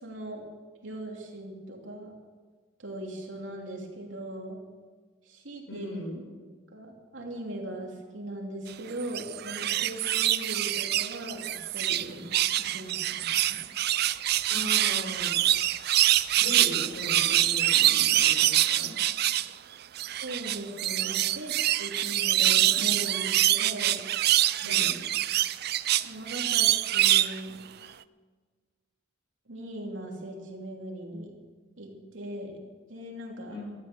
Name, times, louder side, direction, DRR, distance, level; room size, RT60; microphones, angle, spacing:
voice 1, 0.0-0.5 0.8-2.1 2.8-4.6 5.3-6.0 6.7-12.3 12.6-13.7 20.2-24.0 24.6-24.8 26.0-27.7 29.5-31.4 31.8-33.6, right 1 dB, 80° right, 0 dB, 3.0 m, -39 dB
voice 2, 5.7-6.2 14.5-15.4 16.4-18.9 24.6-24.9 33.5-33.8, left 1 dB, 70° left, -1 dB, 6.3 m, -38 dB
sound 1, 9.0-12.1 12.3-19.5 20.0-27.4 27.8-27.9, right 13 dB, 55° right, 0.4 m, -25 dB
13.0 x 13.0 x 7.0 m, 1.5 s
head